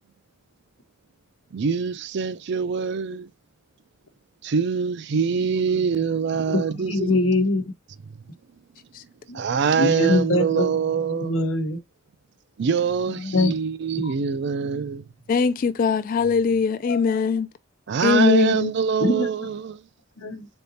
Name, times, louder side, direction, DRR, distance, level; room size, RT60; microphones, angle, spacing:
voice 1, 1.5-3.3 4.4-7.3 9.3-11.3 12.6-15.1 17.9-19.8, right 6 dB, 60° right, 0.4 m, -24 dB
voice 2, 6.5-7.6 9.3-9.4 9.8-11.8 13.2-13.5 14.0-14.1 16.8-17.0 19.0-19.3 20.2-20.5, left 2 dB, 85° left, 1.0 m, -23 dB
voice 3, 15.3-17.5 18.0-18.7, left 5 dB, 45° left, 0.3 m, -21 dB
3.9 x 3.5 x 2.7 m
head